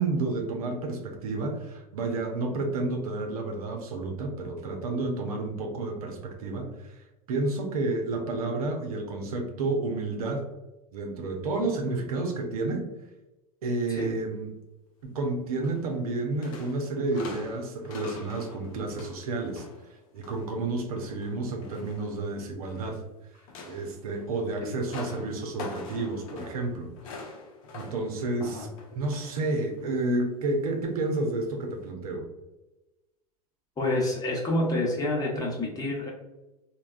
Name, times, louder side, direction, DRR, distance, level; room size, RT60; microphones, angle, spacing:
voice 1, 0.0-10.4 10.9-12.9 13.6-14.5 15.1-19.6 20.1-23.0 23.7-26.9 27.7-32.3, right 2 dB, 75° right, 3 dB, 0.6 m, -30 dB
sound 1, 15.6-16.1 16.4-20.5 20.9-23.0 23.3-29.5 29.8-30.0 31.0-31.2 31.8-31.9, left 3 dB, 65° left, 0.7 m, -44 dB
voice 2, 33.8-36.1, left 1 dB, 20° left, -2 dB, 1.0 m, -28 dB
3.3 x 2.2 x 2.3 m, 1.0 s
hypercardioid pair, 85°, 19 cm